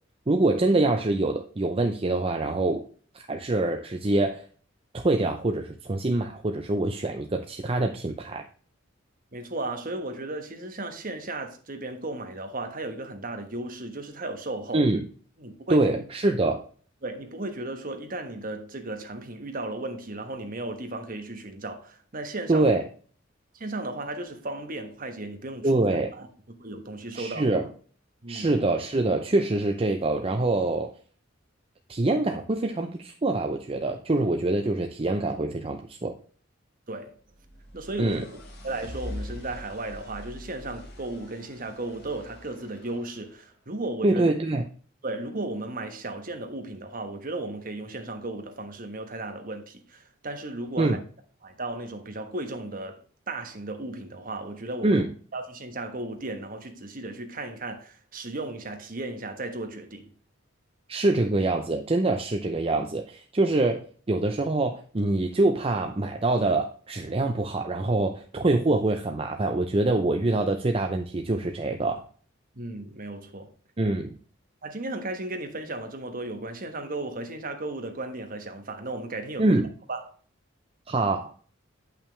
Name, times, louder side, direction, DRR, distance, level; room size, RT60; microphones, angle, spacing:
voice 1, 0.3-2.8 3.3-4.4 4.9-8.5 14.7-15.1 15.7-16.6 22.5-22.8 25.6-26.1 27.1-27.7 28.3-30.9 31.9-36.2 38.0-38.2 44.0-44.6 50.8-51.0 54.8-55.1 60.9-72.0 73.8-74.2 79.4-79.7 80.9-81.4, right 2 dB, 30° right, 0.6 m, -25 dB
voice 2, 9.3-14.9 15.4-15.9 17.0-22.7 23.5-25.8 26.2-26.3 26.6-27.5 28.2-28.5 36.9-37.1 37.7-44.2 45.0-51.0 51.4-55.0 55.3-60.1 72.5-73.5 74.6-79.6 79.9-80.1, right 2 dB, 45° right, 1.3 m, -35 dB
sound 1, 37.2-43.3, left 1 dB, 55° left, 1.8 m, -43 dB
9.0 x 5.7 x 3.3 m
head